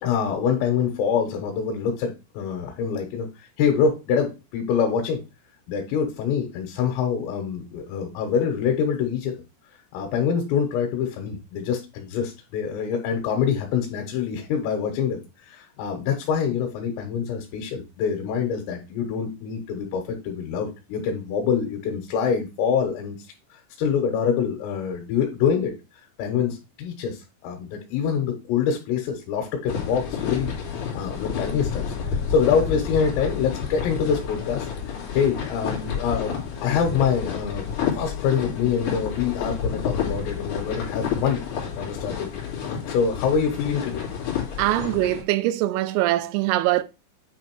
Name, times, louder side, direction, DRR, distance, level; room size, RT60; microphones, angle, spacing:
voice 1, 0.0-3.3 3.6-5.2 5.7-9.3 9.9-23.2 23.5-25.7 26.2-30.5 30.9-31.8 32.1-36.3 36.6-37.6 37.9-41.4 41.8-42.3 42.9-44.0, left 7 dB, 90° left, 3.8 m, -25 dB
sound 1, 29.7-45.2, left 7 dB, 50° left, 3.3 m, -30 dB
voice 2, 44.6-46.8, right 15 dB, 90° right, 3.3 m, -22 dB
9.3 x 3.3 x 4.5 m
omnidirectional pair, 5.7 m